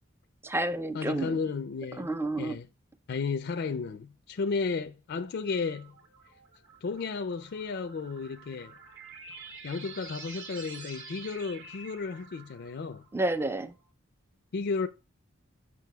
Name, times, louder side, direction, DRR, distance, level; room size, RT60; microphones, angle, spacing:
voice 1, 0.4-1.4 2.0-2.6 13.1-13.7, right 2 dB, 10° right, 0.4 m, -30 dB
voice 2, 0.9-2.1 2.4-2.7 3.1-5.9 6.8-8.7 9.6-13.0 14.5-14.9, left 4 dB, 55° left, 0.4 m, -33 dB
sound 1, 5.5-13.6, right 4 dB, 65° right, 1.8 m, -48 dB
7.6 x 5.9 x 2.3 m
head